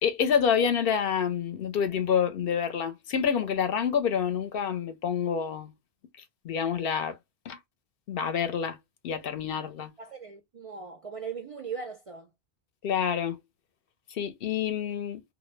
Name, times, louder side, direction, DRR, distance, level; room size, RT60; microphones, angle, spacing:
voice 1, 0.0-5.7 6.4-7.2 7.5-7.6 8.1-8.8 9.0-9.9 12.8-13.4 14.1-15.2, left 7 dB, 65° left, 0.8 m, -27 dB
voice 2, 10.0-12.3, right 6 dB, 55° right, 0.4 m, -39 dB
2.1 x 2.1 x 3.1 m
omnidirectional pair, 1.1 m